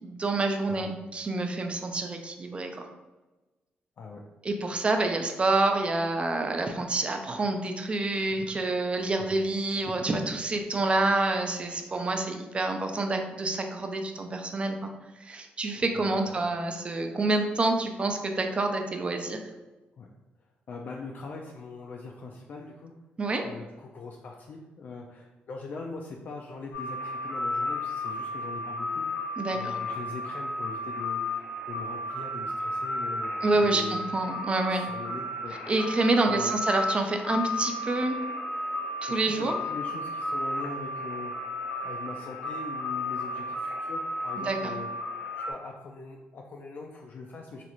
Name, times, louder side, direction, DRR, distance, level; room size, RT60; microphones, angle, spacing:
voice 1, 0.0-2.9 4.4-14.9 15.2-19.4 23.2-23.4 29.4-29.8 33.4-34.9 35.7-38.2 39.0-39.5 44.5-44.7, right 2 dB, 30° right, 5 dB, 0.4 m, -28 dB
voice 2, 15.9-16.4 20.0-20.1 20.7-22.9 23.4-29.1 29.5-33.3 33.7-34.0 34.7-35.7 36.1-36.6 39.2-41.5 41.8-45.1 45.4-47.6, left 3 dB, 55° left, 0 dB, 0.3 m, -41 dB
sound 1, 26.7-45.5, left 1 dB, 85° left, 1.2 m, -33 dB
3.0 x 2.5 x 3.0 m, 1.1 s
cardioid pair, 90°, 4 cm